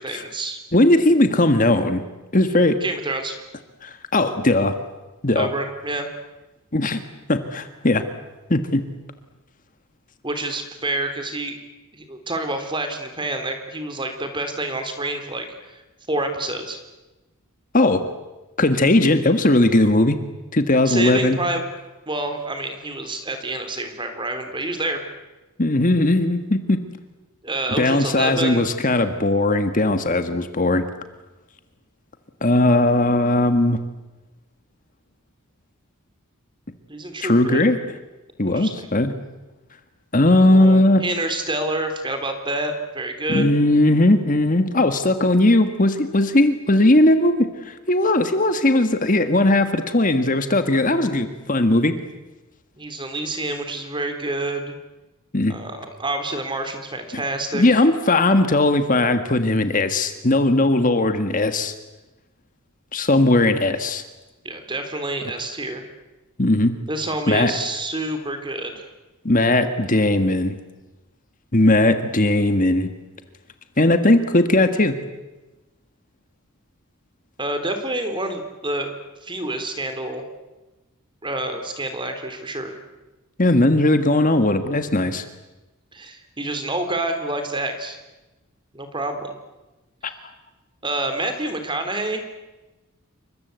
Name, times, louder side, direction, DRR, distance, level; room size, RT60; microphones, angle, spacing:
voice 1, 0.0-0.6 2.8-3.3 5.3-6.1 10.2-11.6 11.9-15.8 16.1-16.8 20.9-21.6 22.1-25.0 27.4-28.6 36.9-37.6 38.5-38.9 40.5-43.5 52.8-54.8 55.5-57.6 64.4-65.8 66.9-68.9 77.4-78.9 79.2-80.2 81.2-82.7 85.9-88.0 88.7-89.3 90.0-90.1 90.8-92.2, right 2 dB, 20° right, 7 dB, 3.7 m, -28 dB
voice 2, 0.7-2.0 2.3-2.8 3.8-4.7 5.2-5.5 6.7-7.0 7.3-8.0 8.5-8.8 17.7-18.0 18.6-20.2 20.5-21.4 25.6-26.8 27.8-30.8 32.4-33.8 37.2-37.8 38.4-39.1 40.1-41.0 43.3-51.9 55.3-55.6 57.1-57.2 57.5-61.7 62.9-64.0 66.4-66.7 67.3-67.5 69.2-70.6 71.5-72.9 73.8-75.0 83.4-85.2 90.0-90.1, left 2 dB, 35° left, 9 dB, 1.6 m, -18 dB
29.0 x 25.0 x 8.2 m, 1.1 s
head